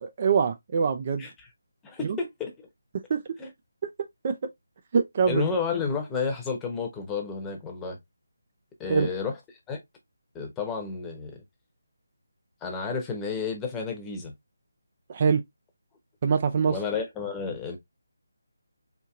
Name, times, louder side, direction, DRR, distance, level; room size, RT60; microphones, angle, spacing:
voice 1, 0.0-1.3 2.0-2.2 3.1-3.2 4.2-4.3 4.9-5.5 8.9-9.1 15.1-15.4 16.2-16.8, right 6 dB, 35° right, 0.4 m, -24 dB
voice 2, 1.8-2.5 3.4-3.5 5.3-8.0 8.8-9.4 9.7-9.8 10.3-11.4 12.6-14.3 16.7-17.8, left 5 dB, 10° left, 0.9 m, -31 dB
4.3 x 2.7 x 2.4 m
figure-of-eight pair, 155°, 0 cm